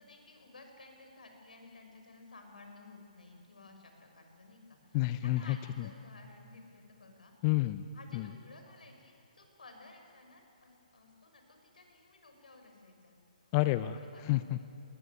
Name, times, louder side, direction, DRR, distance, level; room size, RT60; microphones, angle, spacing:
voice 1, 0.0-7.3 7.9-13.1 13.4-13.5 13.9-14.3, left 3 dB, 85° left, 4 dB, 5.7 m, -55 dB
voice 2, 4.9-5.6 7.4-7.8 8.1-8.2 13.5-14.6, left 17 dB, 30° left, 13 dB, 0.6 m, -29 dB
21.0 x 20.0 x 9.3 m, 3.0 s
hypercardioid pair, 145°, 4 cm